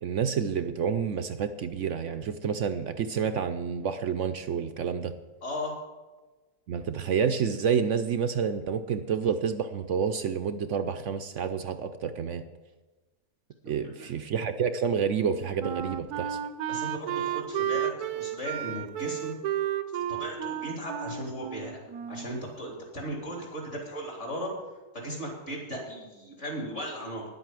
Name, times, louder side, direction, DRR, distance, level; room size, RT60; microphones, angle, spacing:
voice 1, 0.0-5.1 6.7-12.4 13.6-16.4, right 7 dB, 65° right, 9 dB, 0.8 m, -29 dB
voice 2, 5.4-5.8 13.8-14.1 16.7-19.3 20.1-21.8 22.1-24.5 24.9-27.3, equal, 50° left, -1 dB, 3.8 m, -36 dB
Wind instrument woodwind instrument, 15.2-22.4, right 10 dB, 80° right, 1.2 m, -32 dB
10.5 x 8.1 x 7.5 m, 1.2 s
omnidirectional pair, 1.6 m